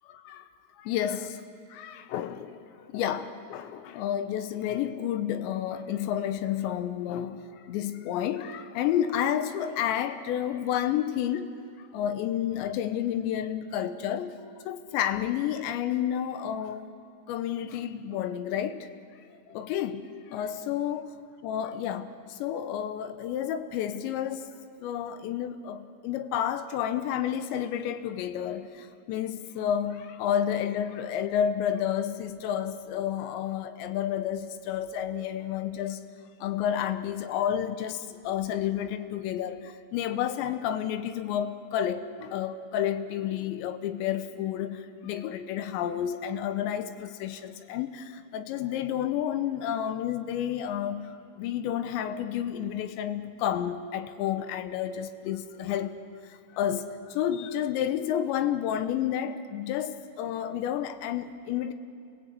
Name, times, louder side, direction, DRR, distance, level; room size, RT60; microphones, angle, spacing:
voice 1, 0.8-1.4 1.7-11.5 11.9-14.3 14.7-16.8 17.3-18.9 19.5-20.0 20.3-21.1 21.4-24.5 24.8-36.0 36.4-56.0 56.5-61.7, left 10 dB, 90° left, 3.2 m, -30 dB
27.5 x 17.0 x 8.4 m
omnidirectional pair, 5.1 m